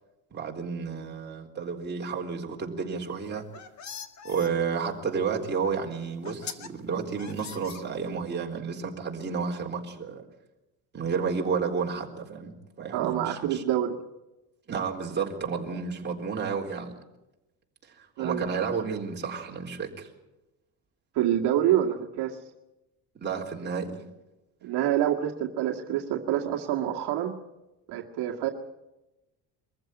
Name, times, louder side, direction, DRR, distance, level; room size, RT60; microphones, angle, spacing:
voice 1, 0.3-3.5 4.2-10.2 10.9-12.5 12.8-13.6 14.7-16.9 18.2-20.1 23.2-24.0, right 5 dB, 25° right, -1 dB, 3.9 m, -31 dB
sound 1, 3.2-4.5 5.6-5.7 6.2-6.7 7.2-8.3, left 7 dB, 40° left, 1.9 m, -41 dB
voice 2, 12.9-14.0 18.2-18.7 21.1-22.4 24.6-27.4 27.9-28.5, right 11 dB, 70° right, 1 dB, 2.0 m, -27 dB
23.5 x 14.5 x 9.0 m, 0.98 s
cardioid pair, 130°, 41 cm